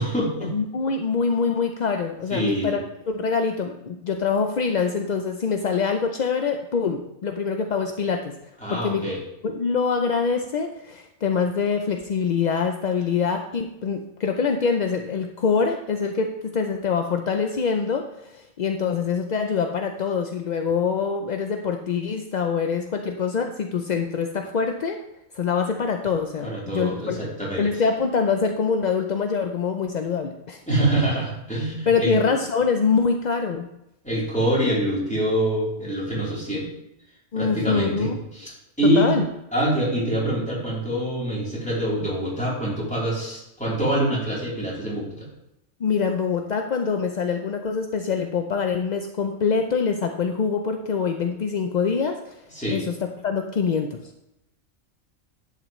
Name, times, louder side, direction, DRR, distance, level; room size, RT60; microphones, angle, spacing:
voice 1, 0.0-0.5 2.3-2.8 8.6-9.2 26.4-27.7 30.7-32.1 34.0-36.7 37.3-38.5 38.8-39.1 39.5-45.3 52.5-52.8, right 1 dB, 5° left, -7 dB, 3.5 m, -25 dB
voice 2, 0.5-2.8 3.1-8.3 8.7-9.1 9.4-25.0 25.3-27.2 27.6-30.6 31.9-33.7 37.3-38.2 39.0-39.2 45.8-52.4 52.7-54.0, left 5 dB, 55° left, 4 dB, 0.5 m, -24 dB
10.5 x 8.3 x 3.1 m, 0.86 s
omnidirectional pair, 1.4 m